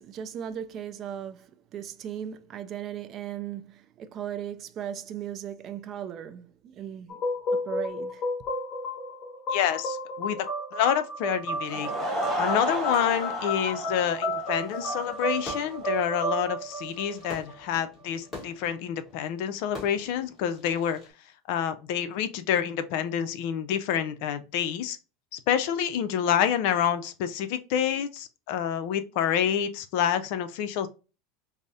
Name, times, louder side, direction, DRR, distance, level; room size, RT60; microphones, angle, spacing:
voice 1, 0.0-7.2 7.5-8.2, right 9 dB, 35° right, 0.4 m, -37 dB
sound 1, 7.1-17.7, equal, 35° left, 1.4 m, -32 dB
voice 2, 9.5-10.5 10.7-11.9 12.4-21.0 21.5-25.0 25.3-30.9, left 9 dB, 65° left, 0.4 m, -28 dB
Laughter / Crowd, 11.5-16.0, equal, ahead, 1.5 m, -33 dB
Fireworks, 15.1-21.1, left 2 dB, 20° left, 1.5 m, -46 dB
4.5 x 2.0 x 2.7 m
supercardioid pair, 140°, 0 cm